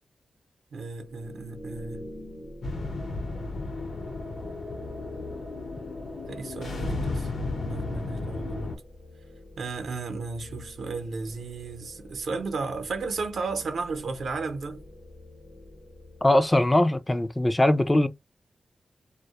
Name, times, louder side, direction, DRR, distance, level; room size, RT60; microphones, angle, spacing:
voice 1, 0.7-2.0 6.3-7.3 7.6-8.7 9.6-14.8, right 4 dB, 80° right, 0.6 m, -34 dB
sound 1, 1.0-16.8, left 1 dB, 55° left, 0.8 m, -46 dB
sound 2, 2.6-8.8, left 3 dB, 90° left, 0.8 m, -34 dB
voice 2, 16.2-18.1, left 1 dB, 15° left, 0.3 m, -21 dB
2.1 x 2.0 x 2.8 m
wide cardioid pair, 95°, 0 cm